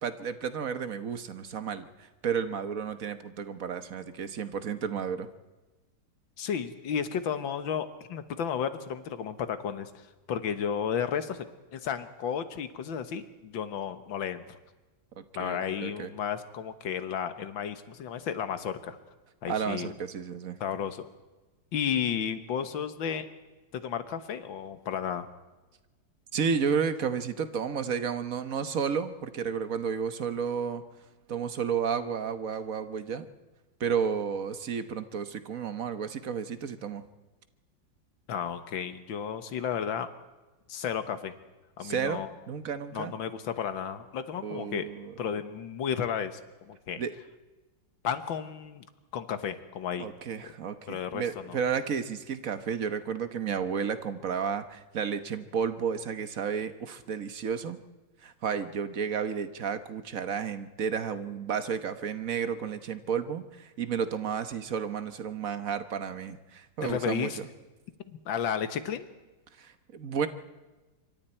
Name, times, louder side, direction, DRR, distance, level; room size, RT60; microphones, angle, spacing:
voice 1, 0.0-1.9 2.2-5.3 15.2-16.1 19.5-20.6 26.3-30.8 31.3-33.3 33.8-37.0 41.8-43.1 44.4-45.1 47.0-47.1 50.0-57.8 58.2-67.5 69.6-70.3, right 6 dB, 50° right, 11 dB, 1.3 m, -32 dB
voice 2, 6.4-9.9 10.3-11.4 11.7-14.6 15.4-19.0 19.4-19.9 20.6-21.1 21.7-23.3 23.7-25.3 38.3-40.1 40.7-41.3 41.8-42.3 42.9-44.9 45.2-47.0 48.0-48.9 49.1-50.1 50.9-51.2 51.5-51.6 66.8-67.4 68.3-69.1, left 8 dB, 85° left, 11 dB, 2.0 m, -33 dB
27.0 x 24.5 x 4.4 m, 1.2 s
omnidirectional pair, 2.1 m